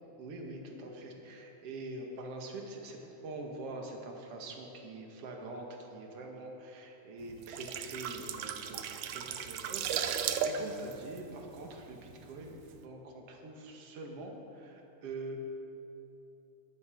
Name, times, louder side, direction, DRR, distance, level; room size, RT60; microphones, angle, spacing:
voice 1, 0.2-12.5 12.8-15.4, right 2 dB, 55° right, 1 dB, 2.4 m, -44 dB
sound 1, 7.3-12.1 12.4-12.6, right 8 dB, 85° right, 2.2 m, -36 dB
18.5 x 10.5 x 5.2 m, 2.9 s
omnidirectional pair, 3.6 m